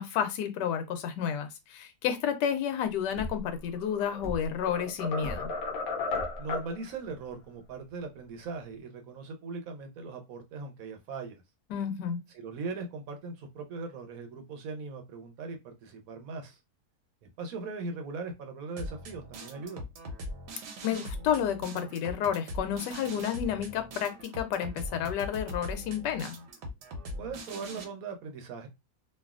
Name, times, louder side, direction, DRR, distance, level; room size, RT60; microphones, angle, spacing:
voice 1, 0.0-5.5 11.7-12.2 20.8-26.3, left 8 dB, 85° left, 1.2 m, -31 dB
sound 1, 2.9-8.8, equal, 10° left, 0.7 m, -42 dB
sound 2, 3.7-4.2 4.6-6.7, left 3 dB, 65° left, 1.1 m, -34 dB
voice 2, 6.4-11.4 12.3-16.6 17.4-19.9 27.2-28.7, right 4 dB, 65° right, 1.0 m, -39 dB
sound 3, 18.8-27.8, left 1 dB, 85° right, 1.4 m, -41 dB
3.2 x 2.4 x 2.4 m
omnidirectional pair, 1.8 m